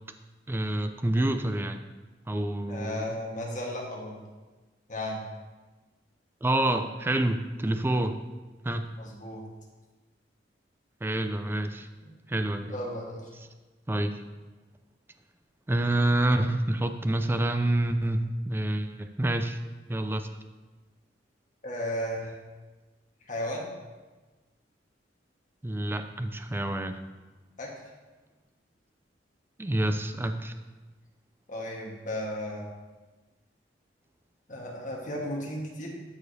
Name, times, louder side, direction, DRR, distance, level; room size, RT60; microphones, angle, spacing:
voice 1, 0.5-1.8 2.3-3.2 6.4-8.2 8.6-8.9 11.0-11.9 12.3-12.8 13.9-14.2 15.7-19.6 19.9-20.3 25.6-27.0 29.6-30.5, right 1 dB, 15° right, 8 dB, 0.4 m, -27 dB
voice 2, 2.7-4.2 4.9-5.3 9.0-9.4 12.0-12.1 12.7-13.2 21.6-22.3 23.3-23.7 27.6-27.7 31.5-32.7 34.5-35.9, left 1 dB, 45° left, -2 dB, 1.4 m, -34 dB
12.5 x 4.9 x 2.7 m, 1.2 s
head